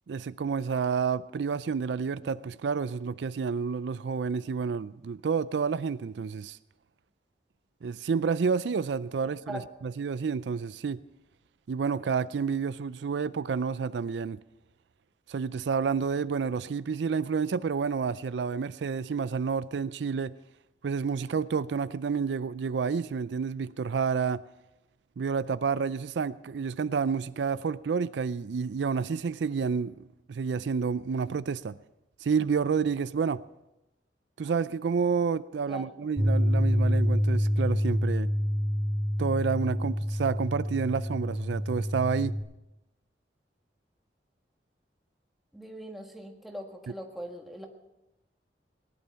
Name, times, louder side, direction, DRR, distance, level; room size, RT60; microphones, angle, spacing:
voice 1, 0.1-6.6 7.8-11.0 11.7-14.4 15.3-20.4 20.8-24.4 25.2-31.8 32.2-33.4 34.4-38.3 39.2-42.4, right 5 dB, 85° right, 0.4 m, -29 dB
Bass guitar, 36.2-42.4, equal, 20° left, 5.4 m, -27 dB
voice 2, 45.5-47.7, equal, ahead, 1.6 m, -40 dB
19.0 x 11.0 x 5.6 m
head